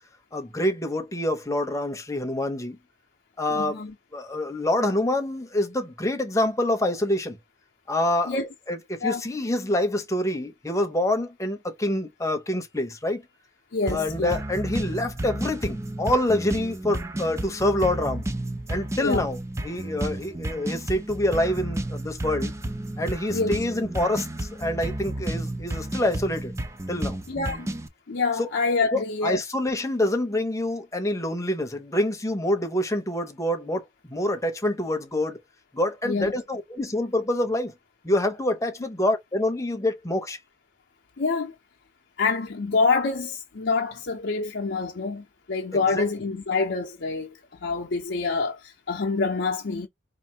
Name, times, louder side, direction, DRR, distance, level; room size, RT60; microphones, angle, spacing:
voice 1, 0.3-2.8 3.4-3.8 4.1-7.4 7.9-8.4 8.7-13.2 13.9-18.3 18.7-19.4 19.6-22.5 23.0-26.5 26.9-27.2 28.4-28.5 28.9-35.4 35.7-37.7 38.0-40.4 45.7-46.0, left 1 dB, 15° left, 0.8 m, -26 dB
voice 2, 3.5-3.9 8.3-8.5 9.0-9.2 13.7-14.4 19.0-19.3 23.3-23.6 27.3-27.7 28.1-29.4 36.0-36.3 41.2-41.5 42.2-47.3 47.6-49.9, left 4 dB, 75° left, 0.6 m, -26 dB
sound 1, 13.9-27.9, right 1 dB, 15° right, 0.5 m, -32 dB
4.3 x 2.6 x 2.8 m
head